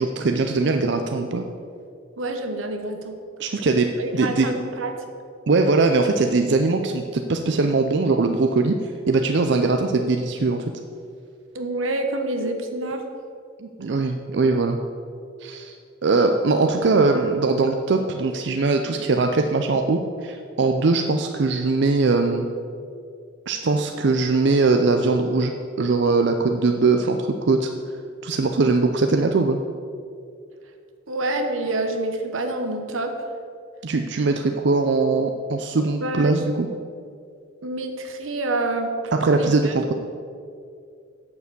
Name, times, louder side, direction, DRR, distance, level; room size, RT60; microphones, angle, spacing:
voice 1, 0.0-1.4 3.4-3.9 4.1-4.5 5.5-8.7 9.1-10.6 13.6-14.8 15.4-15.8 16.0-22.5 23.5-27.7 28.2-29.6 33.8-36.7 39.1-39.9, right 3 dB, 60° right, 5 dB, 0.5 m, -21 dB
voice 2, 2.2-3.2 4.0-4.9 11.5-13.0 31.1-33.1 36.0-36.4 37.6-38.9 39.3-39.7, right 2 dB, 90° right, 5 dB, 1.1 m, -27 dB
8.2 x 6.9 x 6.7 m, 2.4 s
head